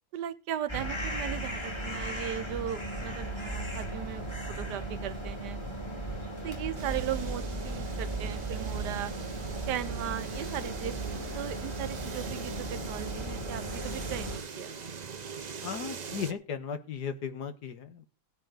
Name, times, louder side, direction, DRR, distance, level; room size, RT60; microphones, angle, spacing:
voice 1, 0.1-4.3 4.6-5.6 6.4-9.1 9.7-10.9 11.3-14.7, right 11 dB, 80° right, 14 dB, 1.3 m, -37 dB
sound 1, 0.7-14.4, right 1 dB, 15° left, 2.2 m, -36 dB
sound 2, 6.7-16.3, right 6 dB, 45° right, 0.5 m, -42 dB
voice 2, 15.6-18.1, left 7 dB, 75° left, 10 dB, 1.8 m, -36 dB
17.0 x 9.2 x 3.9 m, 0.35 s
omnidirectional pair, 1.8 m